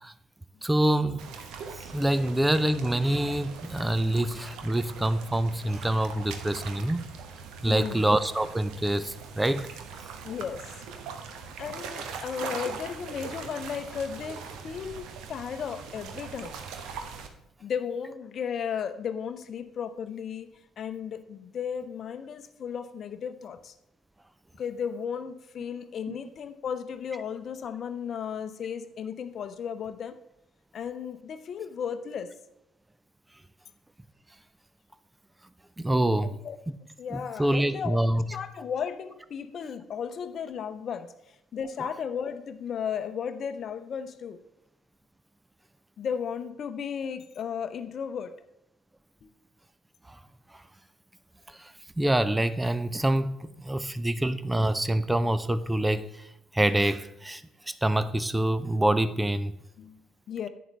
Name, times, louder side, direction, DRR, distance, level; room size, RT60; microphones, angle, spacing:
voice 1, 0.6-1.4 1.9-7.0 7.6-9.7 26.1-26.2 35.8-36.3 37.1-38.2 51.6-51.7 52.0-56.1 56.5-57.4 57.7-59.5, right 1 dB, 10° right, 0.5 m, -26 dB
sound 1, 1.2-17.3, right 5 dB, 60° right, 1.0 m, -41 dB
voice 2, 3.9-4.3 7.7-8.1 10.2-10.7 11.6-16.5 17.6-20.5 20.8-23.7 24.6-30.2 30.7-32.3 36.2-36.6 37.0-38.0 38.3-41.1 41.5-44.4 46.0-48.3 49.2-49.3 53.8-53.9 59.8-60.0 60.3-60.5, left 7 dB, 50° left, 0.7 m, -35 dB
11.0 x 8.5 x 3.4 m
figure-of-eight pair, 50°, 0 cm